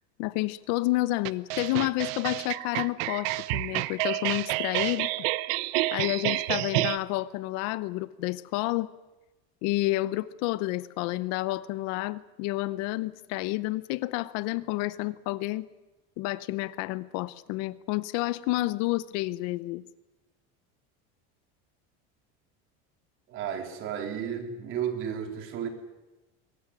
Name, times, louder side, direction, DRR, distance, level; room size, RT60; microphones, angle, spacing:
voice 1, 0.2-5.3 5.9-8.9 9.6-15.7 16.2-19.8, left 19 dB, 55° left, 17 dB, 0.8 m, -30 dB
sound 1, 1.2-7.0, right 19 dB, 70° right, 0.9 m, -29 dB
voice 2, 23.3-25.7, right 8 dB, 40° right, 5 dB, 3.4 m, -33 dB
22.0 x 17.5 x 9.9 m, 1.1 s
cardioid pair, 175°, 31 cm